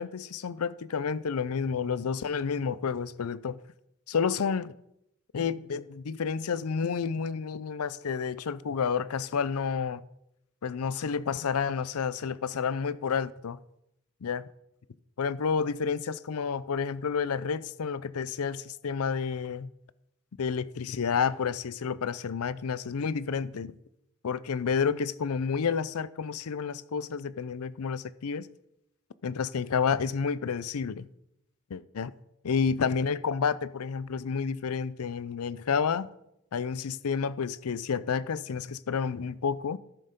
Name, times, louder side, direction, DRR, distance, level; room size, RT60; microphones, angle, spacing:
voice 1, 0.0-3.6 4.1-4.7 5.3-10.0 10.6-13.6 14.2-14.4 15.2-19.7 20.4-23.7 24.2-28.5 29.2-31.1 31.7-32.1 32.4-36.1 36.5-39.8, left 6 dB, 85° left, 0.5 m, -30 dB
13.0 x 6.6 x 5.2 m
head